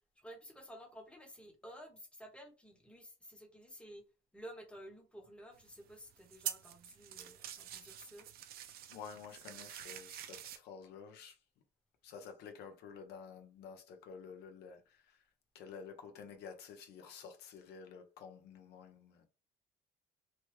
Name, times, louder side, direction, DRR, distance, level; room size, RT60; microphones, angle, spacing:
voice 1, 0.2-4.0 4.3-8.3, equal, 5° left, 0.9 m, -53 dB
sound 1, 5.5-10.6, right 10 dB, 65° right, 0.5 m, -47 dB
voice 2, 8.9-11.4 12.0-15.2 15.5-19.2, left 6 dB, 75° left, 0.7 m, -51 dB
3.0 x 2.1 x 3.2 m
cardioid pair, 110°, 17 cm